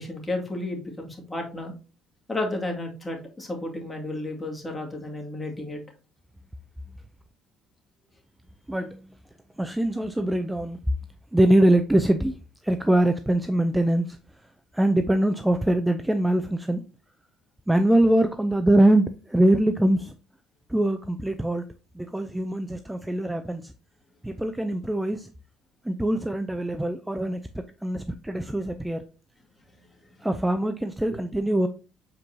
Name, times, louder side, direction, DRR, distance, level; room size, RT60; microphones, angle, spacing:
voice 1, 0.0-1.7 2.3-5.8 30.2-30.3 31.1-31.2, left 2 dB, 15° left, 2.2 m, -32 dB
voice 2, 8.7-9.1 9.6-10.8 11.3-14.2 14.7-16.8 17.7-20.2 20.7-21.6 21.9-23.7 24.2-25.3 25.8-29.0 30.2-31.7, right 1 dB, 10° right, 0.5 m, -23 dB
7.5 x 4.5 x 2.8 m
supercardioid pair, 85°, 0 cm